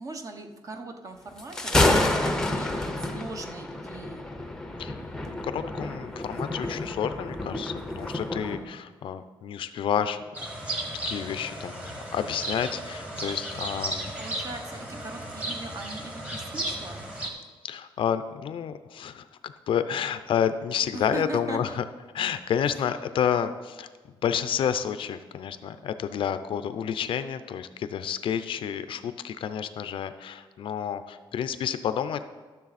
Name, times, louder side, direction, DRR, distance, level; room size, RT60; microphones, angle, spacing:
voice 1, 0.0-4.3 14.2-17.0 20.9-21.8 22.7-22.9, right 3 dB, 35° right, 5 dB, 1.0 m, -39 dB
Thunder, 1.4-8.6, left 2 dB, 5° left, 0.7 m, -28 dB
voice 2, 5.3-10.2 10.9-14.1 17.6-21.8 22.1-23.9 24.2-32.3, left 8 dB, 60° left, 11 dB, 0.5 m, -30 dB
sound 1, 10.3-17.3, right 1 dB, 10° right, 1.4 m, -35 dB
13.0 x 6.9 x 4.1 m, 1.3 s
cardioid pair, 145°, 10 cm